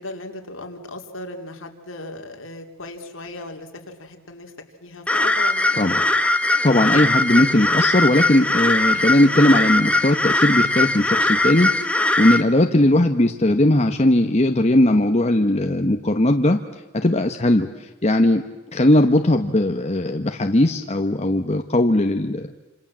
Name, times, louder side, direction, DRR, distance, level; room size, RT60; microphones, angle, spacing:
voice 1, 0.0-4.5 4.8-6.1 12.7-13.0, left 2 dB, 65° left, 3 dB, 3.3 m, -37 dB
sound 1, 5.1-12.4, left 2 dB, 5° left, 1.1 m, -20 dB
voice 2, 6.6-16.6 16.9-18.4 18.7-22.5, left 1 dB, 30° left, 5 dB, 1.1 m, -18 dB
28.0 x 27.5 x 7.5 m, 1.0 s
head